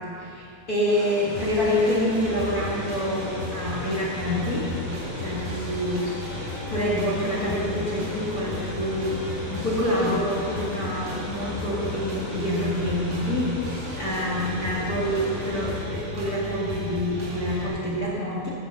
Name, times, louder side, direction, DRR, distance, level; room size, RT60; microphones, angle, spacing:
voice 1, 0.1-4.6 5.2-18.5, equal, 40° left, -6 dB, 1.2 m, -27 dB
sound 1, 0.9-15.8, left 3 dB, 65° left, 3.7 m, -38 dB
sound 2, 1.3-17.7, left 1 dB, 45° right, 2.8 m, -35 dB
16.0 x 6.8 x 6.7 m, 2.5 s
omnidirectional pair, 4.7 m